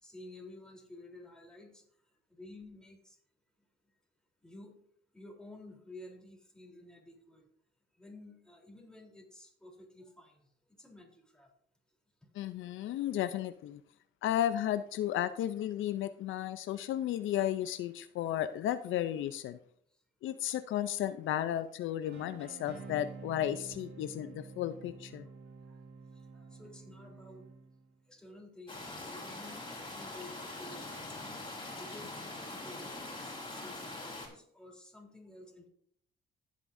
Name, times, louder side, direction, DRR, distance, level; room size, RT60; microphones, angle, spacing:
voice 1, 0.0-1.8 2.3-3.2 4.4-4.8 5.1-7.4 8.0-11.5 24.2-24.3 25.7-25.8 26.3-27.5 28.1-31.0 31.8-35.7, left 2 dB, 5° left, 0 dB, 3.4 m, -52 dB
voice 2, 12.4-13.8 14.2-19.6 20.2-25.3, left 11 dB, 80° left, 12 dB, 0.5 m, -34 dB
sound 1, 22.0-28.0, right 5 dB, 65° right, 2.3 m, -49 dB
sound 2, 28.7-34.3, left 2 dB, 25° left, 3.8 m, -43 dB
15.5 x 8.3 x 2.6 m, 0.63 s
cardioid pair, 90°, 20 cm